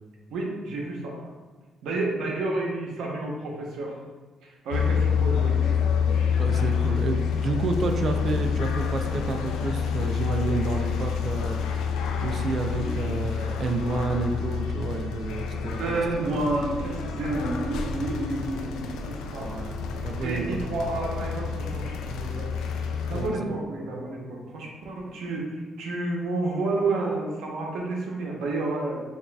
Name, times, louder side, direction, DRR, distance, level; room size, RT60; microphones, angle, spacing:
voice 1, 0.3-1.2 1.8-3.9 4.4-5.7 12.8-12.9 15.8-19.5 20.2-22.5 23.1-29.0, right 2 dB, 85° right, -1 dB, 0.8 m, -30 dB
sound 1, 4.7-23.3, left 6 dB, 90° left, 0.3 m, -28 dB
voice 2, 6.4-11.9 12.2-16.0 19.4-20.6 23.1-23.5, right 3 dB, 50° right, 5 dB, 0.4 m, -30 dB
6.3 x 2.4 x 2.3 m, 1.3 s
cardioid pair, 90°, 0 cm